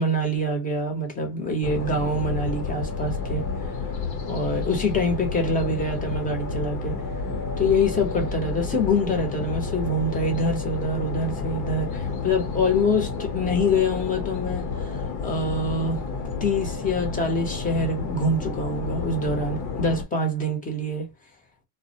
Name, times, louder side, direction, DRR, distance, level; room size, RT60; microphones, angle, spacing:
voice 1, 0.0-3.4 4.3-7.0 7.6-14.9 15.2-16.0 16.4-21.1, left 1 dB, 15° left, 0.8 m, -25 dB
sound 1, 1.6-20.0, left 4 dB, 60° left, 1.0 m, -30 dB
2.2 x 2.1 x 2.7 m
supercardioid pair, 130°, 49 cm